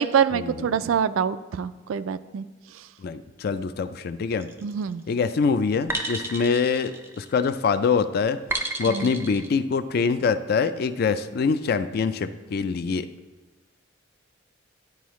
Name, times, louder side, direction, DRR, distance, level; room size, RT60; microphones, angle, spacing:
voice 1, 0.0-2.4 4.6-5.0 8.8-9.1, right 7 dB, 85° right, 14 dB, 0.3 m, -25 dB
voice 2, 3.0-4.5 5.1-8.4 8.8-13.1, left 5 dB, 50° left, 12 dB, 0.3 m, -24 dB
sound 1, 4.4-4.8 5.9-7.6 8.5-9.5, right 2 dB, 10° right, 0.5 m, -32 dB
11.5 x 4.7 x 3.1 m, 1.2 s
head